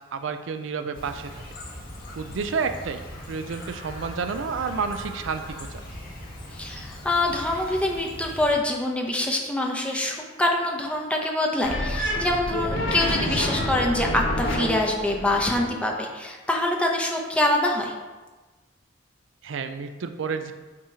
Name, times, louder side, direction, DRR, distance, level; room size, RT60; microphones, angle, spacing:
voice 1, 0.1-1.4 2.2-3.0 3.3-5.8 19.4-20.5, right 5 dB, 70° right, 8 dB, 0.4 m, -30 dB
Chirp tweet, 0.9-8.5, left 1 dB, 45° left, 1.6 m, -40 dB
voice 2, 6.5-17.9, left 1 dB, 5° left, 0 dB, 0.7 m, -25 dB
sound 1, 11.6-15.6, left 1 dB, 85° left, 1.2 m, -28 dB
8.4 x 2.9 x 4.8 m, 1.2 s
head